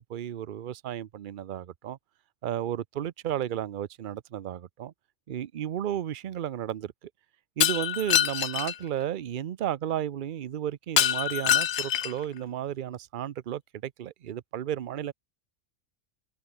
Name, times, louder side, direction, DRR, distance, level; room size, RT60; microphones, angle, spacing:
voice 1, 0.1-2.0 2.4-4.9 5.3-7.1 7.6-15.1, right 11 dB, 50° right, 0.7 m, -33 dB
Shatter, 7.6-8.8 11.0-12.2, left 10 dB, 65° left, 1.0 m, -25 dB
omnidirectional pair, 1.3 m